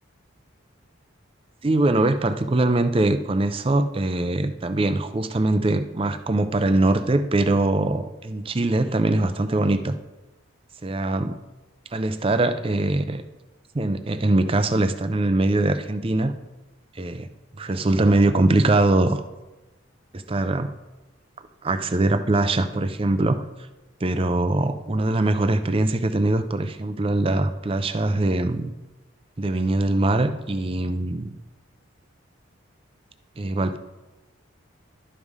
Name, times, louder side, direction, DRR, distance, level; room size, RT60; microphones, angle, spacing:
voice 1, 1.6-10.0 10.8-11.4 11.9-13.2 13.7-16.3 16.9-17.3 17.6-19.2 20.1-20.7 21.4-23.4 24.0-28.7 29.4-31.3 33.4-33.8, right 2 dB, 25° right, 10 dB, 0.5 m, -22 dB
12.0 x 5.5 x 4.8 m, 1.1 s
head